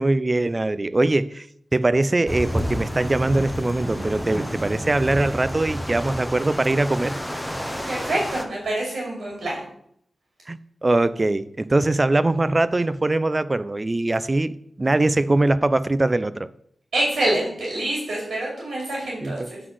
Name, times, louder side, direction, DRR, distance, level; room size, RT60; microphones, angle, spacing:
voice 1, 0.0-1.5 1.7-7.1 10.5-16.5 19.2-19.3, right 2 dB, 30° right, 16 dB, 0.4 m, -22 dB
sound 1, 2.3-8.5, equal, ahead, 0.9 m, -30 dB
voice 2, 7.9-9.6 16.9-19.6, right 1 dB, 75° right, -3 dB, 2.6 m, -26 dB
7.8 x 4.0 x 6.3 m, 0.69 s
cardioid pair, 65°, 0 cm